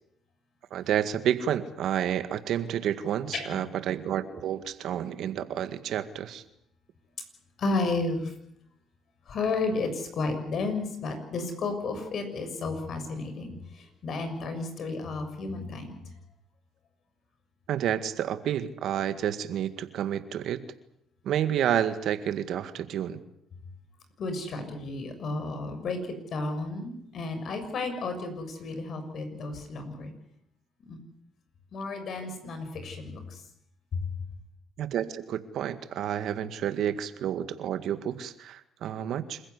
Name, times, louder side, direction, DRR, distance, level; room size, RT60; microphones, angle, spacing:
voice 1, 0.7-6.4 17.7-20.6 21.2-23.2 34.8-39.4, right 10 dB, 70° right, 10 dB, 1.9 m, -30 dB
voice 2, 3.3-3.6 7.6-8.3 9.3-16.0 24.2-30.1 30.9-31.0 31.7-33.4, left 3 dB, 60° left, 7 dB, 6.7 m, -32 dB
27.0 x 15.5 x 9.8 m, 0.77 s
cardioid pair, 80°, 0 cm